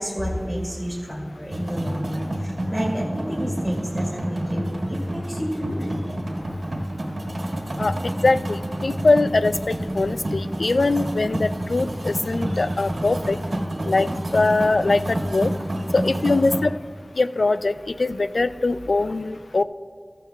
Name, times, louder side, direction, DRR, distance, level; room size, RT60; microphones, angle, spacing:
voice 1, 0.0-6.2, equal, 20° left, -4 dB, 2.3 m, -30 dB
sound 1, 1.5-16.6, right 1 dB, 75° right, 1.6 m, -28 dB
voice 2, 8.2-13.4 13.8-15.5 15.9-16.7 17.2-17.7 18.0-19.6, left 3 dB, 80° left, 13 dB, 0.3 m, -22 dB
16.0 x 13.5 x 2.2 m, 2.1 s
wide cardioid pair, 50°, 0 cm